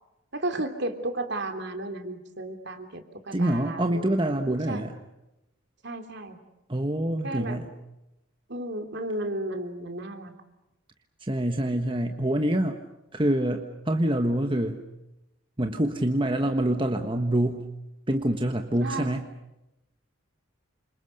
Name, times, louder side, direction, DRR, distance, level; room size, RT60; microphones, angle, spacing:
voice 1, 0.3-4.2 4.7-4.8 5.8-6.4 7.2-7.6 8.5-10.3 18.8-19.1, right 2 dB, 55° right, 6 dB, 3.2 m, -33 dB
voice 2, 3.3-4.9 6.7-7.7 11.2-12.8 13.1-14.8 15.6-17.6 18.1-19.2, right 1 dB, 25° right, 5 dB, 1.4 m, -26 dB
29.0 x 26.5 x 6.7 m, 0.92 s
head